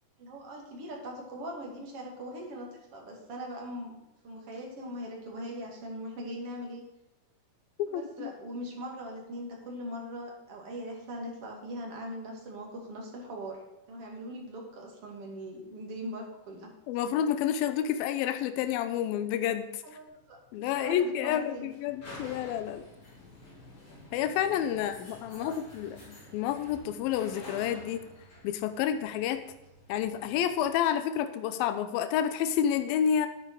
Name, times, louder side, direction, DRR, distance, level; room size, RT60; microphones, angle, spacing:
voice 1, 0.2-4.0 4.2-6.8 7.9-13.6 13.9-16.7 19.8-21.7 24.7-24.9 25.3-25.6, equal, 45° right, 0 dB, 3.1 m, -41 dB
voice 2, 7.8-8.3 16.9-19.8 20.5-22.8 24.1-28.0 28.4-29.4 29.9-33.3, left 9 dB, 85° left, 9 dB, 2.5 m, -29 dB
sound 1, 20.1-30.7, left 1 dB, 35° left, 5.0 m, -50 dB
10.5 x 9.4 x 4.7 m, 0.99 s
omnidirectional pair, 4.2 m